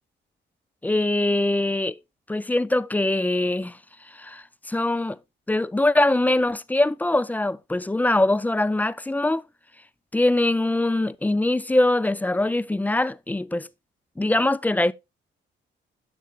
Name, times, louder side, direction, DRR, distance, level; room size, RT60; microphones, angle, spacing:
voice 1, 0.8-2.0 2.3-3.8 4.1-5.2 5.5-9.4 10.1-13.7 14.2-14.9, left 2 dB, 10° left, 0.3 m, -22 dB
10.0 x 6.7 x 2.3 m
cardioid pair, 90°, 20 cm